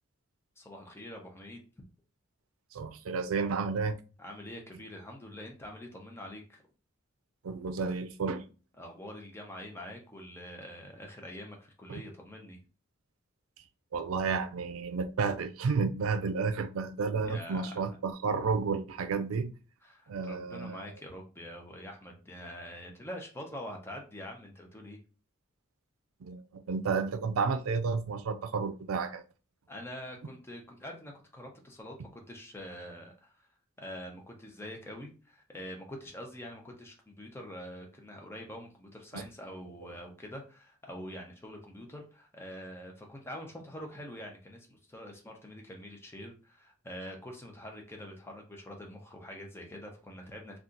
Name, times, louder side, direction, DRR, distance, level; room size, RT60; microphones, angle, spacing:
voice 1, 0.6-1.6 4.2-6.6 8.8-12.6 17.2-18.0 19.8-25.0 29.7-33.5 33.8-50.6, equal, 10° left, 0.6 m, -45 dB
voice 2, 2.7-4.0 7.4-8.4 11.9-12.0 13.9-19.5 20.1-20.8 26.2-29.2 39.1-39.2, right 5 dB, 85° right, 0.4 m, -31 dB
2.8 x 2.4 x 3.7 m
head